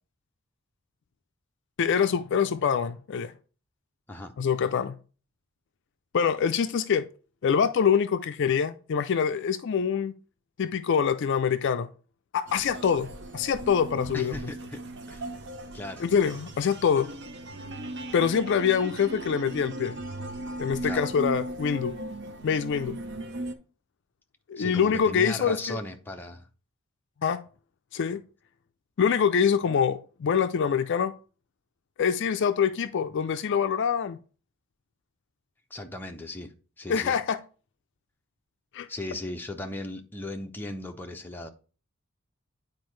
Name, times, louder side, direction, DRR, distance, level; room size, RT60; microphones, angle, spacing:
voice 1, 1.8-3.3 4.4-4.9 6.1-7.1 7.4-10.1 10.6-11.9 12.3-13.1 13.3-14.3 16.0-17.1 18.1-20.0 20.6-21.9 22.4-23.0 24.5-25.8 27.2-27.4 27.9-28.2 29.0-31.1 32.0-34.2 36.9-37.4 38.7-38.9, left 7 dB, 55° left, 0.4 m, -25 dB
sound 1, 12.5-23.5, right 1 dB, 55° right, 0.7 m, -37 dB
voice 2, 14.1-15.3 15.7-16.0 20.8-21.1 24.6-26.5 35.7-37.2 38.9-41.5, left 1 dB, 10° left, 0.6 m, -37 dB
9.6 x 4.3 x 3.2 m
head